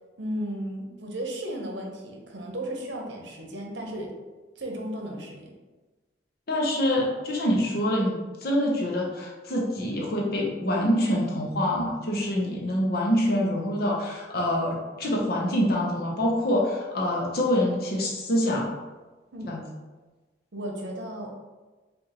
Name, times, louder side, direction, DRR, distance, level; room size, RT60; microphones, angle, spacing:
voice 1, 0.2-4.1 4.6-5.5 19.3-19.5 20.5-21.4, right 1 dB, 85° right, 1 dB, 0.8 m, -34 dB
voice 2, 6.5-18.7 19.4-19.6, left 1 dB, 55° left, -2 dB, 0.8 m, -25 dB
4.8 x 2.6 x 2.9 m, 1.2 s
head